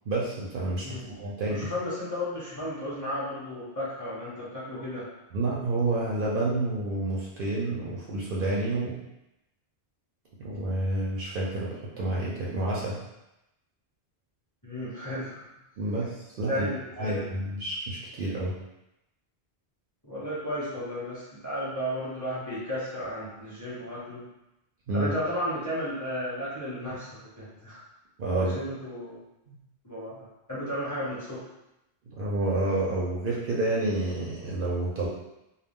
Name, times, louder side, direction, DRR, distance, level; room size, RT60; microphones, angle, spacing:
voice 1, 0.1-1.7 5.3-9.0 10.4-13.0 15.8-16.1 16.4-16.7 17.0-18.5 24.9-25.1 28.2-28.6 29.5-29.6 32.1-35.1, right 2 dB, 60° right, -5 dB, 0.7 m, -29 dB
voice 2, 1.5-5.1 14.6-15.4 16.5-17.3 20.0-24.2 24.9-27.8 28.4-29.2 29.8-31.4, equal, 20° left, -9 dB, 0.8 m, -34 dB
2.3 x 2.2 x 3.5 m, 0.91 s
omnidirectional pair, 1.1 m